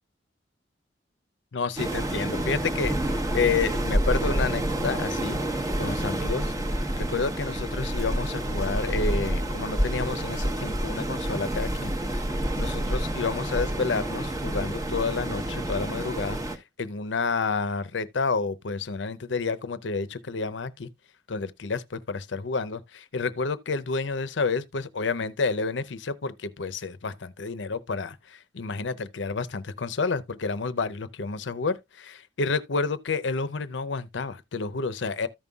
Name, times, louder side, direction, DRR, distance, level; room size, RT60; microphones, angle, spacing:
voice 1, 1.5-6.5 7.0-11.9 12.5-20.9 21.3-35.3, left 4 dB, 85° left, 0.7 m, -30 dB
Waves surf, 1.8-16.6, right 1 dB, 20° right, 0.9 m, -28 dB
14.0 x 5.4 x 2.3 m
head